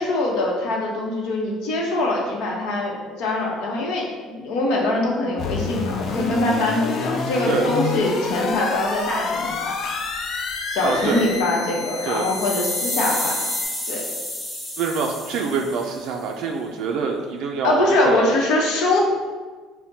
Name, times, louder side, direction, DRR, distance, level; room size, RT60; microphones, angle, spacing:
voice 1, 0.0-9.5 10.7-13.4 13.9-14.0 17.6-19.0, left 2 dB, 75° left, -1 dB, 0.8 m, -23 dB
sound 1, 5.4-13.6, left 4 dB, 40° left, 0.3 m, -28 dB
voice 2, 10.8-11.3 12.0-12.3 14.8-18.3, right 5 dB, 60° right, 2 dB, 0.3 m, -25 dB
sound 2, 11.9-16.1, left 1 dB, 10° left, 0.7 m, -30 dB
5.7 x 2.1 x 2.7 m, 1.4 s
cardioid pair, 145°, 0 cm